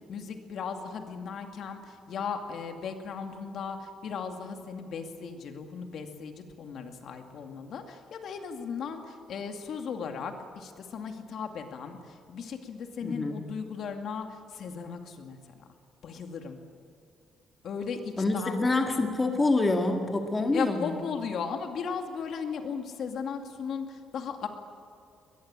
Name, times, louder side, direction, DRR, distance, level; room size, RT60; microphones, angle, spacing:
voice 1, 0.1-15.7 16.0-16.6 17.6-18.6 20.5-24.5, left 6 dB, 60° left, 5 dB, 2.4 m, -36 dB
voice 2, 13.0-13.4 18.2-20.9, left 2 dB, 15° left, 3 dB, 1.9 m, -26 dB
22.5 x 21.5 x 8.9 m, 2.4 s
cardioid pair, 150°, 0 cm